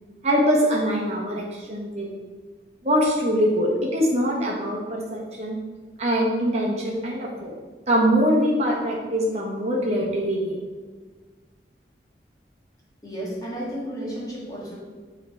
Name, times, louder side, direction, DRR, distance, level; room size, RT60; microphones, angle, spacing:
voice 1, 0.2-2.1 2.8-5.6 6.0-7.5 7.9-10.6, equal, 35° right, -3 dB, 1.2 m, -23 dB
voice 2, 13.0-14.8, equal, 20° left, -5 dB, 1.7 m, -32 dB
9.5 x 3.5 x 4.5 m, 1.5 s
head